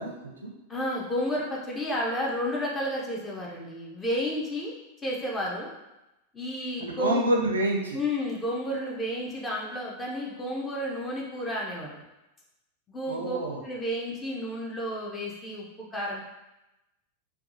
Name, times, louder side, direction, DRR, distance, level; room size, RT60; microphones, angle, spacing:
voice 1, 0.0-0.5 6.8-8.0 13.1-13.6, right 1 dB, 75° right, 0 dB, 0.4 m, -28 dB
voice 2, 0.7-4.7 5.0-5.7 6.3-7.3 7.9-12.0 12.9-13.4 13.6-16.2, equal, 15° left, -3 dB, 0.5 m, -31 dB
2.6 x 2.1 x 2.7 m, 0.94 s
figure-of-eight pair, 90°, 0 cm